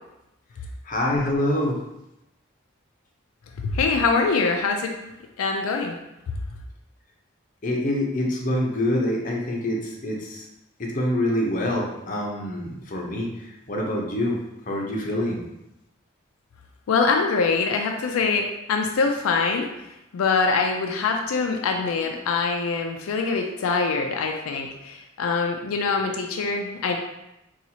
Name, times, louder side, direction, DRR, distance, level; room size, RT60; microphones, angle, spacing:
voice 1, 0.9-1.8 7.6-10.4 10.8-13.3 13.7-14.4 14.7-15.4, left 1 dB, 40° left, -2 dB, 0.6 m, -25 dB
voice 2, 3.6-4.9 5.4-6.0 16.9-19.7 20.1-27.0, left 4 dB, 85° left, 3 dB, 0.4 m, -24 dB
4.1 x 2.4 x 2.7 m, 0.89 s
head